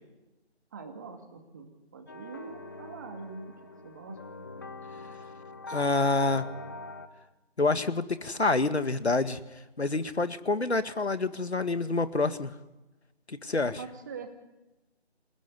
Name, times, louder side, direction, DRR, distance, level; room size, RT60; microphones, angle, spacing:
voice 1, 0.7-3.5 3.8-4.2 13.8-14.4, right 4 dB, 15° right, 5 dB, 2.1 m, -43 dB
sound 1, 2.1-7.1, left 3 dB, 20° left, 1.2 m, -43 dB
voice 2, 5.7-6.5 7.6-9.4 9.8-12.5 13.3-13.8, left 3 dB, 75° left, 11 dB, 1.9 m, -27 dB
28.5 x 18.0 x 9.8 m, 1.0 s
figure-of-eight pair, 165°, 33 cm